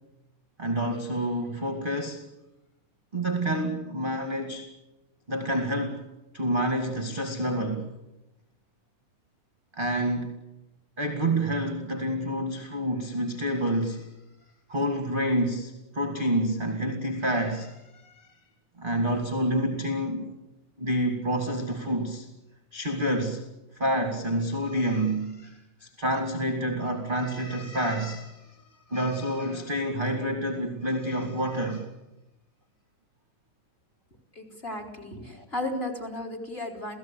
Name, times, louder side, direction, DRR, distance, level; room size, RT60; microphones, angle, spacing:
voice 1, 0.6-2.2 3.1-4.7 5.3-6.0 6.3-7.9 9.7-10.3 11.0-14.1 14.7-18.3 18.8-20.3 20.8-22.3 22.7-23.5 23.7-28.6 28.9-31.9 35.4-35.5, right 1 dB, 20° right, 5 dB, 2.0 m, -28 dB
voice 2, 34.3-37.0, left 1 dB, 20° left, 5 dB, 4.2 m, -34 dB
29.0 x 17.0 x 8.8 m, 0.98 s
omnidirectional pair, 3.6 m